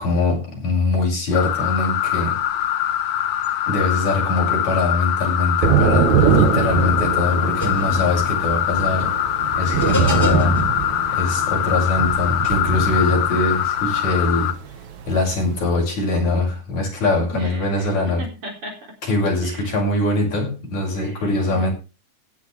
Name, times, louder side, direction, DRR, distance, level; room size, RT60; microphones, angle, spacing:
voice 1, 0.0-2.4 3.7-9.1 9.6-10.6 11.1-14.6 15.1-18.2 19.0-21.7, left 2 dB, 65° left, 7.4 m, -22 dB
sound 1, 1.3-14.5, left 11 dB, 90° left, 2.8 m, -23 dB
Thunder / Rain, 5.6-15.6, right 7 dB, 65° right, 2.8 m, -23 dB
sound 2, 7.5-12.5, equal, 5° left, 2.1 m, -30 dB
voice 2, 17.3-19.0 19.4-19.8 21.0-21.7, right 1 dB, 45° right, 4.6 m, -36 dB
17.0 x 10.5 x 3.4 m
omnidirectional pair, 3.6 m